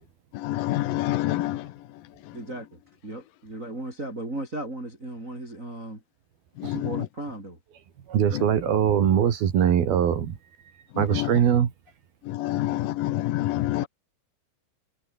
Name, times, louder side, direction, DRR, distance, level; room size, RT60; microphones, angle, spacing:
voice 1, 0.4-1.6 6.6-6.8 11.1-11.3 12.3-13.9, left 15 dB, 75° left, 2.1 m, -26 dB
voice 2, 2.3-6.0 6.6-7.6 13.8-13.9, right 1 dB, 15° right, 6.0 m, -36 dB
voice 3, 8.1-10.4 11.0-11.7, right 9 dB, 60° right, 3.9 m, -22 dB
omnidirectional pair, 5.3 m